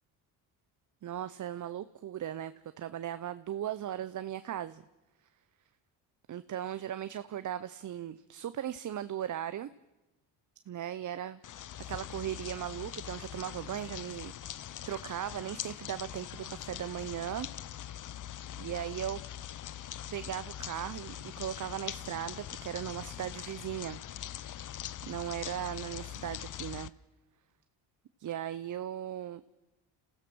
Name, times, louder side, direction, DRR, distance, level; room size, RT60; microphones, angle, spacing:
voice 1, 1.0-4.8 6.3-9.7 10.7-11.4 11.9-17.5 18.6-19.2 20.1-24.0 25.1-26.9 28.2-29.4, right 11 dB, 40° right, 13 dB, 0.7 m, -38 dB
sound 1, 11.4-26.9, left 11 dB, 40° left, 0.6 m, -42 dB
27.5 x 15.5 x 6.3 m, 1.0 s
supercardioid pair, 70°, 46 cm